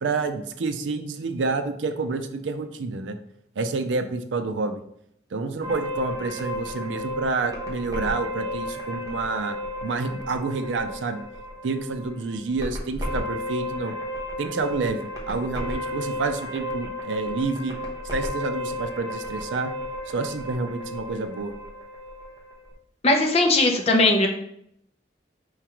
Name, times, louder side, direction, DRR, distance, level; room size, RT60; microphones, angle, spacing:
voice 1, 0.0-3.2 3.6-4.8 5.3-9.6 9.8-11.2 11.6-13.9 14.4-15.0 15.3-17.8 18.1-19.7 20.1-21.5, right 3 dB, 85° right, 9 dB, 0.5 m, -28 dB
sound 1, 5.6-22.7, left 1 dB, 20° right, 0.8 m, -33 dB
voice 2, 23.0-24.3, left 2 dB, 35° left, 2 dB, 0.6 m, -19 dB
4.6 x 3.6 x 3.0 m, 0.72 s
head